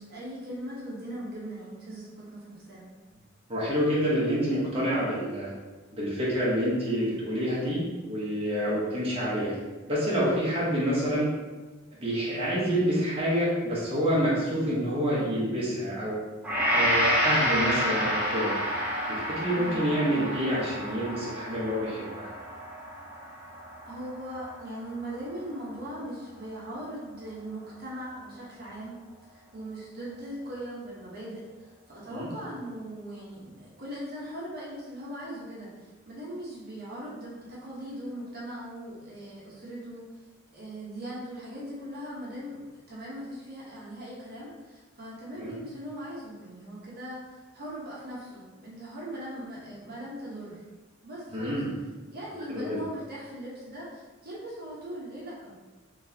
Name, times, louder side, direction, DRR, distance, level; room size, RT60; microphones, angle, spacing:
voice 1, 0.0-2.9 19.6-19.9 23.9-40.1 40.5-50.6 51.0-51.6 52.1-55.5, right 1 dB, 50° right, -6 dB, 1.1 m, -40 dB
voice 2, 3.5-5.5 5.9-9.5 9.9-11.3 12.0-16.2 16.7-18.5 19.1-22.3 32.1-32.3 45.4-45.5 51.3-51.7 52.5-52.8, equal, 30° right, -8 dB, 1.1 m, -27 dB
Gong, 16.4-24.8 25.2-25.4, equal, 5° right, 0.8 m, -29 dB
4.4 x 3.3 x 2.8 m, 1.2 s
head